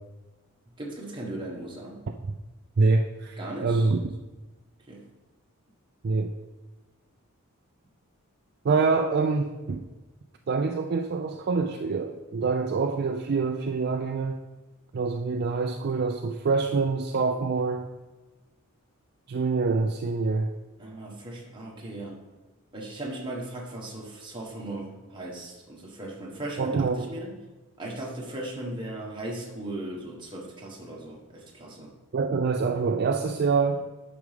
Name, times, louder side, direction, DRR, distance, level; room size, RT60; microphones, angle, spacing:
voice 1, 0.8-2.0 3.4-3.9 4.9-5.1 20.8-22.2 22.7-27.4 27.8-31.9, right 1 dB, 20° right, -2 dB, 1.5 m, -37 dB
voice 2, 2.8-4.0 6.0-6.3 8.6-9.8 10.5-14.4 14.9-17.9 19.3-20.5 26.6-27.1 32.1-34.0, right 4 dB, 45° right, 5 dB, 0.4 m, -25 dB
9.7 x 6.0 x 3.5 m, 1.2 s
head